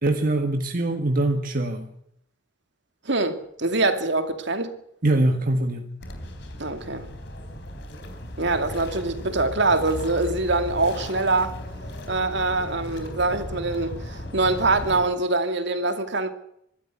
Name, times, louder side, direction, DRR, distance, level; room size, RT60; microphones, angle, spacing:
voice 1, 0.0-1.9 5.0-5.9, right 2 dB, 45° right, 1.6 m, -23 dB
voice 2, 3.0-4.7 6.6-7.1 8.4-11.5 12.1-16.3, right 2 dB, 65° right, 2.5 m, -24 dB
sound 1, 6.0-15.0, left 1 dB, 65° left, 3.7 m, -36 dB
24.0 x 13.0 x 8.4 m
head